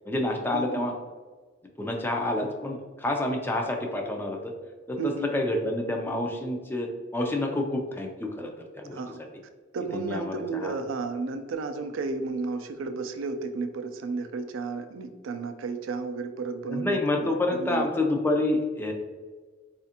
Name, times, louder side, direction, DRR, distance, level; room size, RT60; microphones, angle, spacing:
voice 1, 0.1-0.9 1.8-4.5 4.9-6.9 7.1-9.3 9.9-10.8 16.7-18.9, left 1 dB, 10° left, 2 dB, 0.3 m, -28 dB
voice 2, 5.0-5.3 8.9-9.2 9.7-17.8, right 4 dB, 80° right, 8 dB, 0.4 m, -33 dB
4.2 x 2.4 x 2.7 m, 1.4 s
head